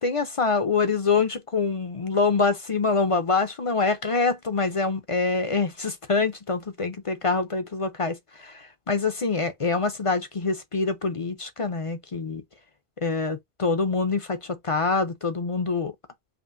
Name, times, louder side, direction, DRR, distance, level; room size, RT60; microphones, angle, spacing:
voice 1, 0.0-12.4 13.0-15.9, left 4 dB, 40° left, 0.5 m, -25 dB
5.1 x 2.5 x 2.5 m
omnidirectional pair, 1.1 m